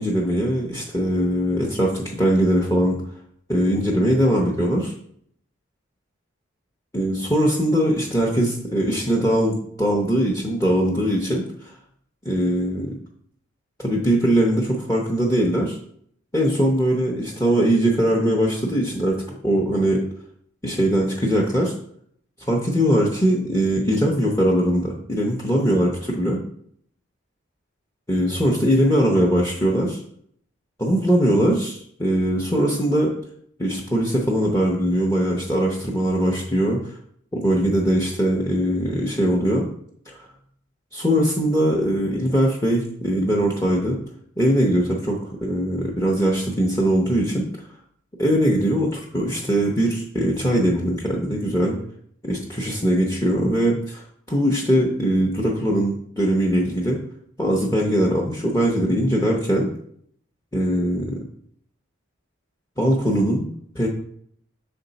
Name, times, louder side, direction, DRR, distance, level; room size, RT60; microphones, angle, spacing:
voice 1, 0.0-3.0 3.5-4.9 6.9-11.8 12.2-13.0 13.8-15.8 16.3-20.0 20.6-21.7 22.5-26.4 28.1-30.0 30.8-33.1 33.6-37.0 37.3-39.7 40.1-40.3 40.9-44.0 44.4-47.7 48.2-51.8 52.2-57.0 57.4-59.7 60.5-61.2 62.8-63.5 63.7-63.9, equal, 15° left, -1 dB, 0.7 m, -21 dB
6.3 x 4.3 x 4.0 m, 0.65 s
head